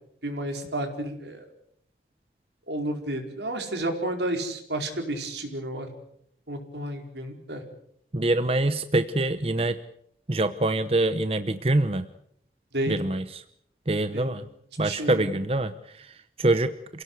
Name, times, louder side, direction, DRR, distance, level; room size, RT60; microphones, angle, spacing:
voice 1, 0.2-1.4 2.7-5.9 6.5-7.6 12.7-13.0 14.1-14.3 14.8-15.3, right 1 dB, 80° right, 4 dB, 4.7 m, -31 dB
voice 2, 8.1-9.8 10.3-12.1 12.9-13.4 13.9-14.4 14.8-17.0, right 2 dB, 35° right, 11 dB, 0.8 m, -25 dB
28.0 x 17.0 x 8.1 m, 0.72 s
head